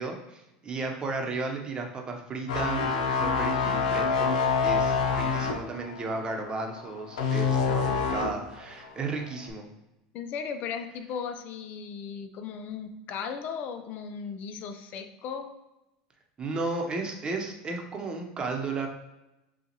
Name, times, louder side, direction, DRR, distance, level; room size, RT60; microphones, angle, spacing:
voice 1, 0.0-4.4 4.6-9.7 16.4-18.9, right 3 dB, 25° right, 2 dB, 0.9 m, -34 dB
sound 1, 2.5-8.5 8.8-9.1, left 5 dB, 85° left, 0.6 m, -26 dB
voice 2, 10.1-15.5, left 6 dB, 50° left, 7 dB, 0.6 m, -36 dB
6.8 x 2.4 x 3.0 m, 0.95 s
supercardioid pair, 120°, 4 cm